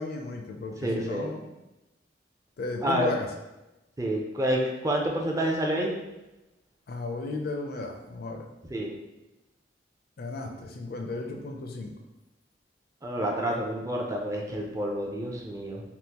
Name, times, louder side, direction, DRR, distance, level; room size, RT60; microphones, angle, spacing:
voice 1, 0.0-1.5 2.6-3.3 6.9-8.5 10.2-11.9, left 2 dB, 55° left, 3 dB, 0.4 m, -34 dB
voice 2, 0.8-1.3 2.8-3.1 4.0-6.0 8.7-8.9 13.0-15.8, right 1 dB, 20° right, 0 dB, 0.4 m, -28 dB
3.6 x 2.4 x 2.8 m, 1.0 s
head